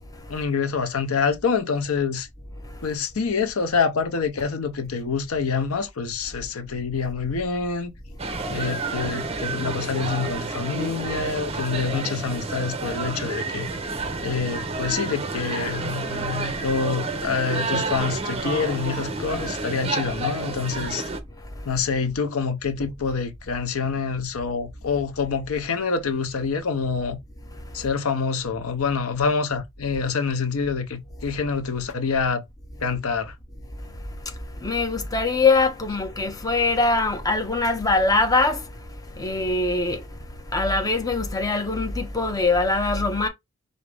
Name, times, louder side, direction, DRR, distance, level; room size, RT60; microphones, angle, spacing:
voice 1, 0.3-2.3 2.8-7.9 8.5-13.7 14.2-21.1 21.6-27.2 27.7-32.4 32.8-33.4, left 5 dB, 85° left, 0.7 m, -26 dB
sound 1, 8.2-21.2, right 3 dB, 30° right, 0.6 m, -30 dB
voice 2, 34.6-38.6 39.2-40.0 40.5-43.3, left 3 dB, 15° left, 0.7 m, -22 dB
4.9 x 2.6 x 3.3 m
head